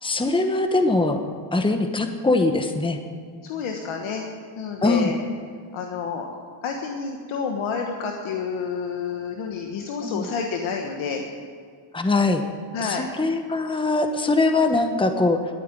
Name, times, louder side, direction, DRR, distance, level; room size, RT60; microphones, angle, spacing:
voice 1, 0.0-1.2 1.5-3.0 4.8-5.1 10.0-10.3 11.9-12.4 12.8-15.4, left 2 dB, 10° left, 6 dB, 1.1 m, -22 dB
voice 2, 3.4-4.2 4.6-5.2 5.7-6.3 6.6-11.3 12.7-13.0, left 6 dB, 85° left, 2 dB, 1.4 m, -29 dB
12.5 x 9.3 x 9.7 m, 2.1 s
cardioid pair, 100°, 47 cm